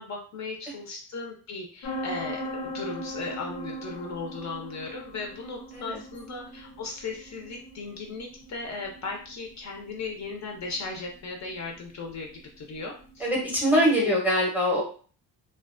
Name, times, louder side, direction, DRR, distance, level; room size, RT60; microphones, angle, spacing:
voice 1, 0.0-12.3 12.6-13.3 14.0-14.1, left 3 dB, 45° left, 1 dB, 0.5 m, -37 dB
sound 1, 1.8-13.3, equal, 85° left, 0.7 m, -40 dB
voice 2, 13.2-14.8, equal, 5° right, -4 dB, 0.6 m, -23 dB
2.4 x 2.2 x 2.4 m, 0.41 s
cardioid pair, 165°, 39 cm